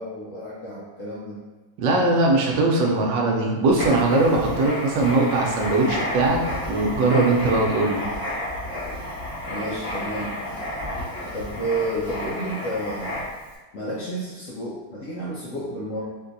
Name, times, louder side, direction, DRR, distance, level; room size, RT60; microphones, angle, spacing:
voice 1, 0.0-1.4 9.5-10.4 11.3-13.2 13.7-16.1, right 1 dB, 75° left, -6 dB, 0.7 m, -31 dB
voice 2, 1.8-8.0, right 2 dB, 90° right, -1 dB, 1.3 m, -20 dB
Writing, 3.7-13.5, left 1 dB, 35° left, 0.5 m, -31 dB
3.6 x 2.6 x 2.5 m, 1.2 s
omnidirectional pair, 1.9 m